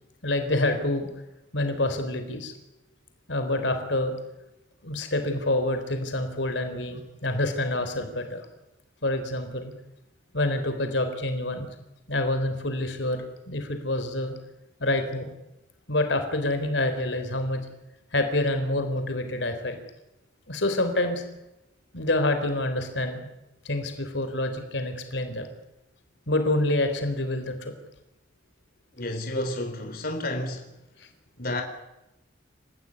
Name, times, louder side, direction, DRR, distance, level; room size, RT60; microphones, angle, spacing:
voice 1, 0.2-1.1 1.5-2.5 3.3-4.1 4.8-8.5 9.0-9.7 10.3-11.7 12.1-14.3 14.8-15.3 15.9-17.6 18.1-19.8 20.5-21.2 21.9-23.2 23.6-25.5 26.3-27.7 31.0-31.1, left 1 dB, 65° left, 3.8 m, -27 dB
voice 2, 28.9-30.7 31.4-31.6, left 1 dB, 50° left, 3.9 m, -31 dB
29.0 x 16.0 x 9.8 m
head